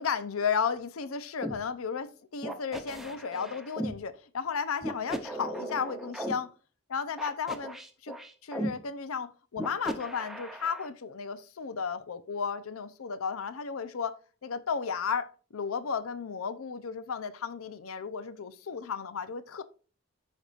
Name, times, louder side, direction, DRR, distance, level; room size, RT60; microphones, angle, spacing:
voice 1, 0.0-6.5 6.9-7.8 8.0-8.2 8.4-19.6, left 6 dB, 80° left, 0.6 m, -34 dB
sound 1, 1.4-1.6 2.4-4.0 4.8-6.3 7.2-8.7 9.6-10.9, right 1 dB, ahead, 0.7 m, -36 dB
15.0 x 5.3 x 2.4 m
head